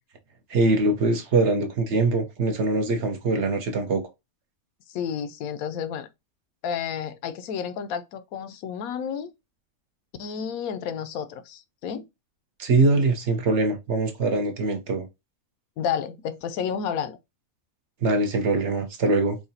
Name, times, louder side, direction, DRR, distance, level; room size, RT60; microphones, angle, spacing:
voice 1, 0.5-4.0 12.6-15.1 18.0-19.4, right 3 dB, 55° right, 1.0 m, -23 dB
voice 2, 4.9-6.1 6.6-9.3 10.2-12.0 15.8-17.2, left 7 dB, 80° left, 1.0 m, -31 dB
4.8 x 2.3 x 2.7 m
omnidirectional pair, 1.5 m